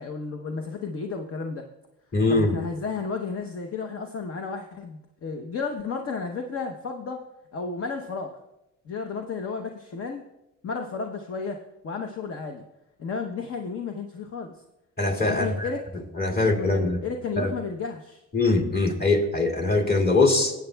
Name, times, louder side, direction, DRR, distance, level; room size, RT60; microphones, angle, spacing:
voice 1, 0.0-1.7 2.3-7.2 7.5-8.3 8.9-10.2 10.6-11.6 11.8-12.6 13.0-14.5 15.3-15.8 16.3-18.2, left 4 dB, 50° left, 4 dB, 0.8 m, -33 dB
voice 2, 2.1-2.6 15.0-15.7 16.2-17.0 17.4-17.5 18.3-20.5, left 2 dB, 30° left, 1 dB, 2.1 m, -22 dB
18.0 x 8.2 x 2.2 m, 0.92 s
cardioid pair, 90°, 30 cm